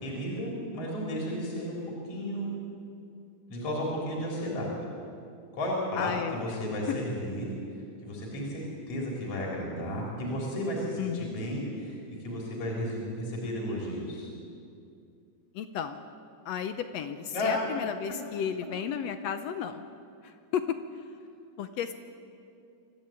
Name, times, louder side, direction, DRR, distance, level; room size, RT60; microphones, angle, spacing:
voice 1, 0.0-1.8 2.0-2.5 3.5-4.7 5.5-7.5 8.0-12.0 12.2-14.3 17.3-17.5, equal, 50° left, -3 dB, 4.6 m, -33 dB
voice 2, 6.0-6.5 6.9-7.0 11.0-11.5 15.6-16.0 16.5-19.9 20.2-20.8 21.6-21.9, left 8 dB, 70° left, 9 dB, 1.7 m, -33 dB
24.0 x 14.0 x 8.8 m, 2.5 s
omnidirectional pair, 3.5 m